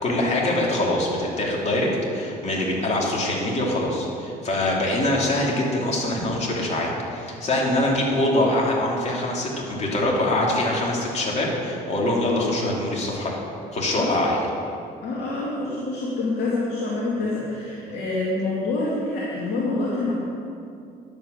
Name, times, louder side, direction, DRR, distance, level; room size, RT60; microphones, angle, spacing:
voice 1, 0.0-13.4 13.7-14.4 17.2-17.3 17.8-18.0, left 1 dB, 40° left, -3 dB, 3.0 m, -24 dB
voice 2, 15.0-20.1, left 2 dB, 75° left, -6 dB, 2.3 m, -26 dB
11.0 x 8.3 x 6.6 m, 2.5 s
cardioid pair, 110°, 17 cm